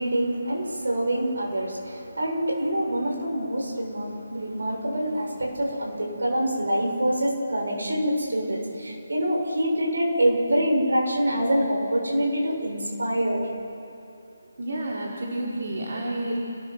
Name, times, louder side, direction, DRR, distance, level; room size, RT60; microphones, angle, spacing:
voice 1, 0.0-13.5, right 1 dB, 85° right, 0 dB, 7.6 m, -25 dB
voice 2, 14.6-16.4, right 1 dB, 60° right, -3 dB, 4.2 m, -30 dB
29.5 x 20.5 x 6.3 m, 2.7 s
hypercardioid pair, 165°, 0 cm